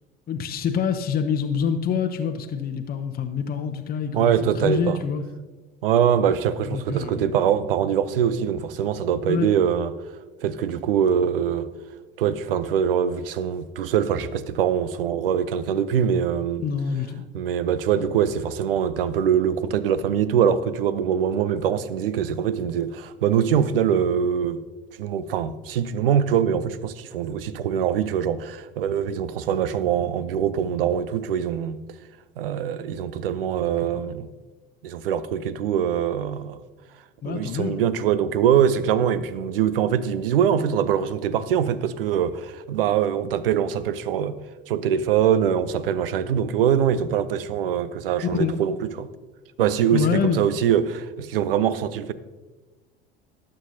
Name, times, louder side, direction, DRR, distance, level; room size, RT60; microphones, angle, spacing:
voice 1, 0.3-5.2 6.7-7.5 9.3-9.5 16.6-17.2 37.2-37.8 48.4-48.6 49.9-50.5, left 7 dB, 30° left, 0.9 m, -26 dB
voice 2, 4.1-5.0 5.8-9.9 10.4-11.7 12.2-16.6 17.3-24.6 25.0-31.8 32.4-34.3 34.8-36.6 37.2-44.4 44.7-49.1 49.6-52.1, right 8 dB, 70° right, 0.7 m, -23 dB
18.5 x 7.7 x 2.8 m
figure-of-eight pair, 65°, 29 cm